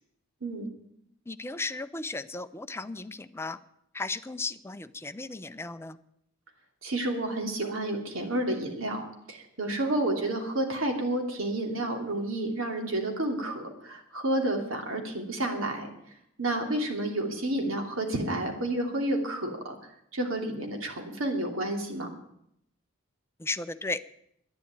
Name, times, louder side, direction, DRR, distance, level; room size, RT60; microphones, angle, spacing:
voice 1, 1.3-3.6 3.9-6.0 23.4-24.0, left 3 dB, 10° left, 11 dB, 0.5 m, -35 dB
voice 2, 6.8-15.9 16.4-19.8 20.1-22.1, right 1 dB, 75° right, 2 dB, 2.9 m, -30 dB
11.0 x 10.5 x 9.3 m, 0.75 s
head